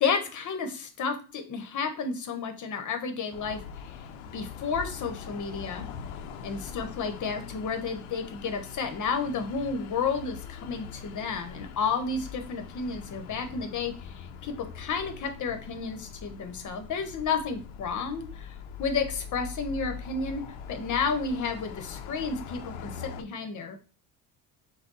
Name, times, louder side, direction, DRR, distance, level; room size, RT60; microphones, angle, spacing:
voice 1, 0.0-4.0 4.3-5.9 6.4-20.4 20.7-23.8, left 5 dB, 40° left, 6 dB, 1.0 m, -31 dB
sound 1, 3.3-23.2, left 7 dB, 85° left, 0.7 m, -42 dB
5.9 x 2.3 x 4.0 m, 0.35 s
cardioid pair, 110°, 46 cm